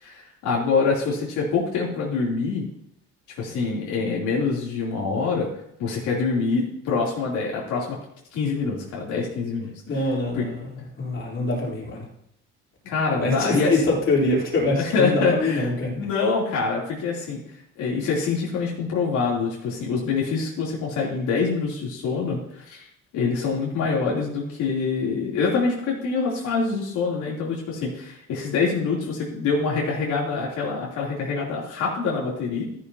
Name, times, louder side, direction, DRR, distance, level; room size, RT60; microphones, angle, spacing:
voice 1, 0.0-2.7 3.4-5.5 5.8-8.0 8.3-9.7 10.3-10.4 12.8-13.7 14.8-15.7 16.0-17.4 17.8-22.9 23.1-32.6, left 4 dB, 80° left, -4 dB, 3.1 m, -25 dB
voice 2, 9.9-12.1 13.2-16.0, left 2 dB, 40° left, -3 dB, 3.5 m, -24 dB
13.5 x 10.5 x 2.8 m, 0.75 s
cardioid pair, 130°, 30 cm